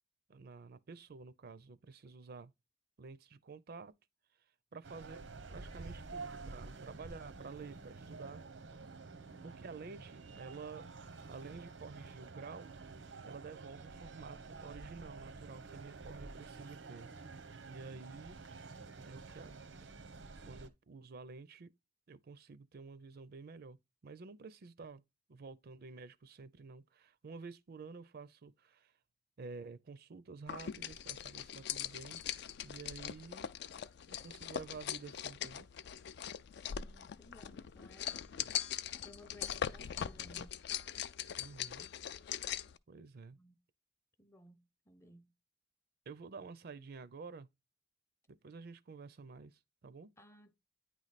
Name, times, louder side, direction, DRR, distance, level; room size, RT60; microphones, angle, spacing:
voice 1, 0.3-2.5 3.0-3.9 4.7-5.2 5.5-8.4 9.4-10.8 11.3-12.8 13.2-17.1 17.7-18.4 19.0-19.5 19.8-20.0 20.5-21.7 22.1-23.8 24.0-25.0 25.3-28.9 29.4-32.2 32.6-33.5 34.1-35.7 41.4-41.9 42.9-43.4 46.1-47.5 48.4-50.1, right 4 dB, 55° right, 0.5 m, -50 dB
sound 1, 4.8-20.7, right 3 dB, 90° right, 0.8 m, -50 dB
voice 2, 9.1-9.6 18.1-19.0 36.8-38.3 39.0-40.6 43.3-43.6 44.2-45.3 50.2-50.5, equal, 15° left, 0.6 m, -59 dB
sound 2, 30.5-42.8, left 9 dB, 60° left, 0.4 m, -41 dB
9.4 x 3.2 x 4.0 m
head